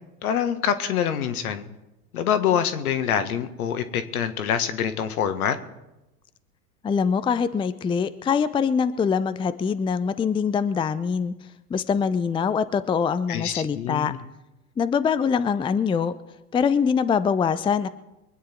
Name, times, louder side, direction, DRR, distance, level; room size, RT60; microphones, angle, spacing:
voice 1, 0.2-1.6 2.1-5.6 13.3-14.2, left 8 dB, 70° left, 10 dB, 1.7 m, -25 dB
voice 2, 6.8-11.3 11.7-14.1 14.8-16.1 16.5-17.9, left 6 dB, 10° left, 14 dB, 0.5 m, -23 dB
23.5 x 9.6 x 4.5 m, 0.97 s
hypercardioid pair, 85°, 46 cm